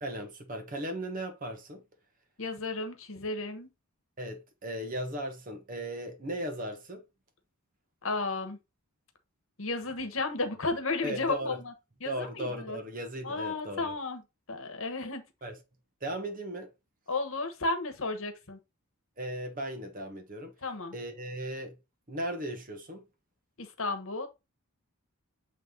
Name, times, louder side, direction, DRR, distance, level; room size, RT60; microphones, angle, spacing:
voice 1, 0.0-1.8 4.2-7.0 11.0-11.6 12.0-13.9 15.4-15.6 16.0-16.7 19.2-20.5 20.9-21.8 22.1-23.1, right 1 dB, 40° right, 1.2 m, -37 dB
voice 2, 2.4-3.7 8.0-8.6 9.6-11.7 12.0-12.8 13.2-14.2 14.5-15.2 17.1-18.6 20.6-20.9 23.6-24.3, left 3 dB, 60° left, 1.2 m, -33 dB
7.5 x 3.3 x 3.8 m
head